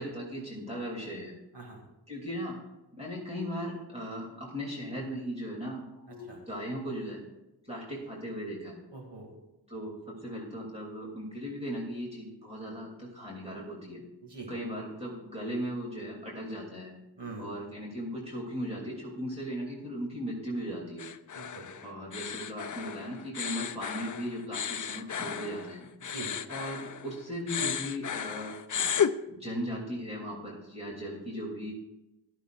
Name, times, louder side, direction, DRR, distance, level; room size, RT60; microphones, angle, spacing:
voice 1, 0.0-1.3 2.1-2.6 2.9-7.2 7.7-8.8 9.7-14.0 14.5-16.9 17.4-21.1 21.8-25.9 26.5-28.5 29.3-31.7, equal, 15° right, -4 dB, 2.8 m, -37 dB
voice 2, 8.9-9.3 14.2-14.5 17.2-17.5 21.4-21.7 26.0-26.3, right 3 dB, 65° right, 1 dB, 2.4 m, -43 dB
sound 1, 21.0-27.2 27.5-29.1, left 8 dB, 45° left, 0.5 m, -34 dB
16.5 x 11.5 x 2.5 m, 0.95 s
wide cardioid pair, 105°, 43 cm